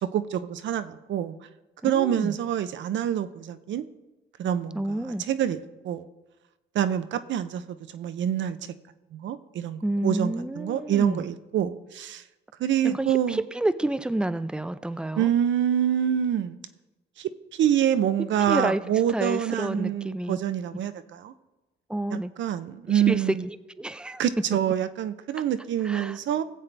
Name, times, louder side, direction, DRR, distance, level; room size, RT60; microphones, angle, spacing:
voice 1, 0.0-1.4 1.8-3.8 4.4-4.8 5.3-5.6 5.8-6.1 6.7-7.6 7.9-8.6 9.1-12.2 12.6-13.4 15.2-16.6 17.2-21.3 22.1-23.4 24.2-26.4, right 10 dB, 70° right, 11 dB, 0.6 m, -26 dB
voice 2, 1.8-2.3 4.7-5.2 9.8-11.3 12.8-15.3 18.5-18.8 19.1-20.4 21.9-22.3 22.9-24.2 25.4-25.5 25.8-26.2, right 1 dB, 5° right, 13 dB, 0.5 m, -29 dB
18.5 x 7.7 x 3.4 m, 1.1 s
cardioid pair, 90°, 20 cm